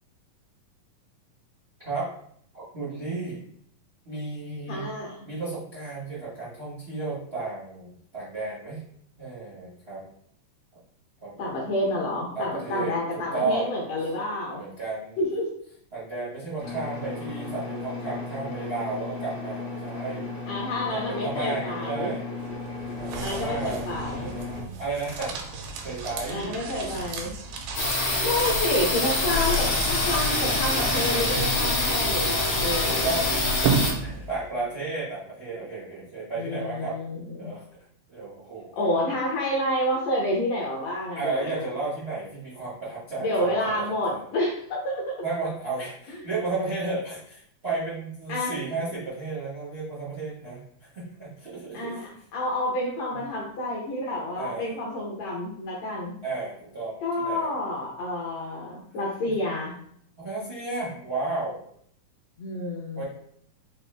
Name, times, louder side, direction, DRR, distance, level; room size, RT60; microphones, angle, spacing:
voice 1, 2.5-3.4 4.0-4.9 5.2-8.8 9.2-10.0 11.2-11.5 12.3-13.7 14.5-15.3 15.9-20.3 20.9-22.2 23.0-25.3 25.8-26.5 30.9-31.0 32.6-37.0 37.3-37.6 38.1-39.2 41.1-44.2 45.2-52.0 53.1-53.2 54.4-54.8 56.2-57.5 60.2-61.6 62.9-63.0, right 3 dB, 70° right, -8 dB, 0.5 m, -33 dB
voice 2, 4.7-5.1 11.4-14.6 15.2-15.5 20.5-22.1 23.2-24.8 26.3-27.3 28.0-33.1 36.4-37.5 38.8-41.7 43.2-45.1 48.3-48.5 51.7-52.0 52.3-56.1 57.0-59.7 62.4-63.0, left 1 dB, 70° left, -4 dB, 1.7 m, -29 dB
sound 1, 16.6-24.6, left 3 dB, 50° left, 0.8 m, -35 dB
sound 2, 22.4-34.6, right 5 dB, 90° right, 2.4 m, -34 dB
sound 3, 27.7-33.9, left 2 dB, 90° left, 1.0 m, -25 dB
5.2 x 2.5 x 3.3 m, 0.65 s
omnidirectional pair, 3.9 m